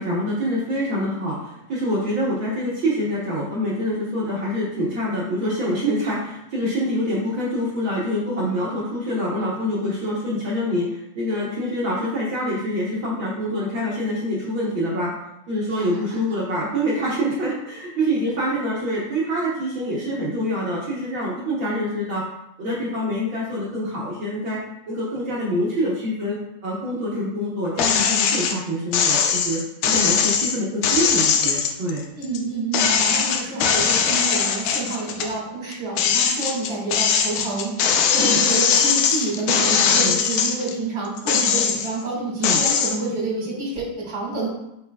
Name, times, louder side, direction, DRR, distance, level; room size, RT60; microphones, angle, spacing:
voice 1, 0.0-15.1 15.5-22.2 22.6-24.6 24.9-32.0 38.2-38.4 40.0-40.2 42.4-42.6, equal, 60° right, -6 dB, 1.3 m, -25 dB
sound 1, 27.8-28.6 28.9-32.4 32.7-35.3 35.7-40.7 41.2-42.0 42.4-43.0, left 7 dB, 80° left, 2.2 m, -20 dB
voice 2, 32.1-44.5, right 3 dB, 30° right, -4 dB, 2.1 m, -28 dB
8.5 x 4.9 x 2.3 m, 0.85 s
omnidirectional pair, 3.6 m